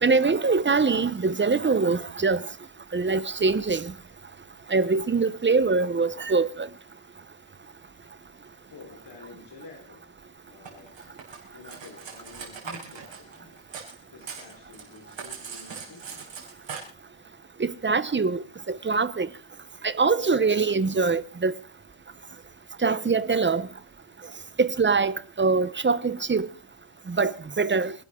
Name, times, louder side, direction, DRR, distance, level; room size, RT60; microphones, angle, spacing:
voice 1, 0.0-2.4 2.9-3.9 4.7-6.7 17.6-19.3 19.8-21.5 22.8-23.7 24.6-26.5 27.1-27.9, right 4 dB, 25° right, 0.8 m, -23 dB
voice 2, 8.7-10.0 10.5-16.3, left 4 dB, 65° left, 4.1 m, -49 dB
Cutlery silverware, 10.6-13.9 14.2-16.8, right 6 dB, 80° right, 7.2 m, -40 dB
28.5 x 12.5 x 3.7 m
wide cardioid pair, 170°, 44 cm